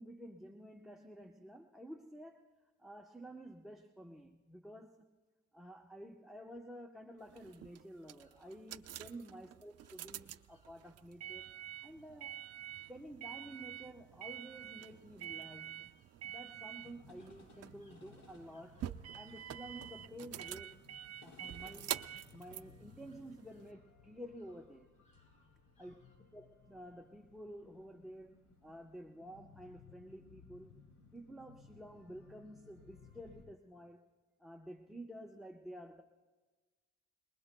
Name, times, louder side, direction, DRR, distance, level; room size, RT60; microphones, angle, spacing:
voice 1, 0.0-2.5 2.8-5.1 5.5-11.5 11.8-12.5 12.9-16.0 16.2-18.9 19.1-20.8 21.2-22.0 22.3-24.9 25.8-25.9 26.3-30.7 31.1-34.0 34.4-36.0, equal, ahead, 1 dB, 0.9 m, -51 dB
sound 1, 7.1-26.2, left 1 dB, 25° left, 4.2 m, -76 dB
sound 2, 7.3-23.7, right 11 dB, 55° right, 0.5 m, -47 dB
sound 3, 16.8-33.4, left 4 dB, 70° left, 4.3 m, -61 dB
26.5 x 20.5 x 2.3 m, 1.3 s
cardioid pair, 90°, 30 cm